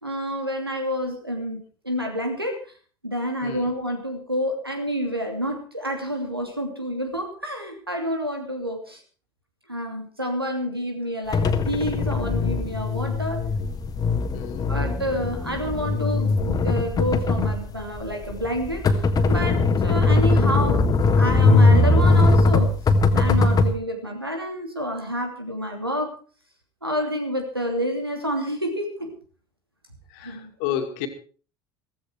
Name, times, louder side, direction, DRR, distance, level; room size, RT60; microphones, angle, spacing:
voice 1, 0.0-2.6 3.0-9.0 9.7-13.4 14.7-18.9 19.3-20.8 21.1-22.7 23.1-26.1 26.8-29.1 30.2-30.5, equal, 90° right, 4 dB, 2.9 m, -28 dB
sound 1, 11.3-23.7, left 3 dB, 30° left, 1.7 m, -20 dB
voice 2, 14.3-14.7 30.1-31.1, left 10 dB, 60° left, 7 dB, 2.4 m, -31 dB
15.5 x 15.0 x 4.6 m, 0.40 s
figure-of-eight pair, 65°, 12 cm